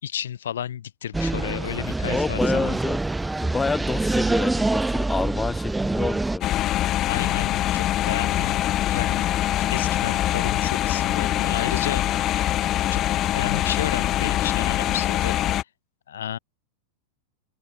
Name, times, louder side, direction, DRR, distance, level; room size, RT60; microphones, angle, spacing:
voice 1, 0.0-2.8 6.9-9.3 9.7-12.1 12.9-13.0 13.3-15.4 16.1-16.4, left 10 dB, 90° left, 3.2 m, -32 dB
sound 1, 1.1-6.4, right 2 dB, 5° right, 3.1 m, -25 dB
voice 2, 2.1-3.0 3.4-6.6, left 4 dB, 15° left, 2.4 m, -28 dB
sound 2, 6.4-15.6, left 13 dB, 35° left, 1.9 m, -24 dB
hypercardioid pair, 120°, 0 cm